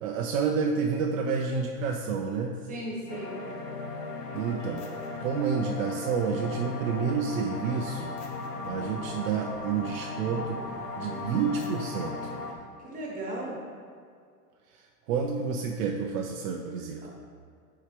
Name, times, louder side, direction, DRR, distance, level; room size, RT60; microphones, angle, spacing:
voice 1, 0.0-2.6 4.3-4.9 5.2-8.1 8.6-10.6 11.0-12.2 15.1-17.0, right 5 dB, 60° right, 1 dB, 0.6 m, -29 dB
voice 2, 2.7-3.4 12.8-13.6 17.0-17.1, right 1 dB, 15° right, -3 dB, 1.5 m, -36 dB
sound 1, 3.1-12.5, left 3 dB, 80° left, 1.0 m, -37 dB
6.5 x 4.7 x 3.3 m, 2.2 s
hypercardioid pair, 125°, 47 cm